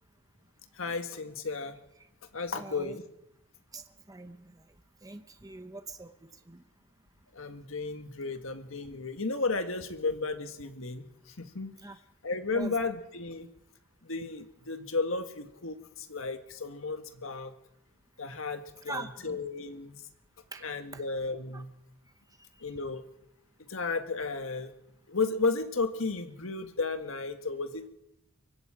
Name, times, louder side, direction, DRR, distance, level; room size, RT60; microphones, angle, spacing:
voice 1, 0.8-1.7 2.3-3.0 7.3-11.0 11.4-11.7 12.2-13.5 14.0-15.8 16.1-17.5 18.2-20.0 20.6-21.7 22.6-23.0 23.7-24.7 25.1-27.9, left 3 dB, 75° left, 7 dB, 1.7 m, -33 dB
voice 2, 2.5-3.0 3.7-4.6 5.0-6.1 6.5-6.6 11.8-12.0 12.5-12.8 18.8-19.4 20.5-20.7 20.9-21.0 21.5-21.6 22.4-22.5, right 2 dB, 15° right, 8 dB, 0.9 m, -43 dB
24.0 x 24.0 x 5.0 m, 0.86 s
head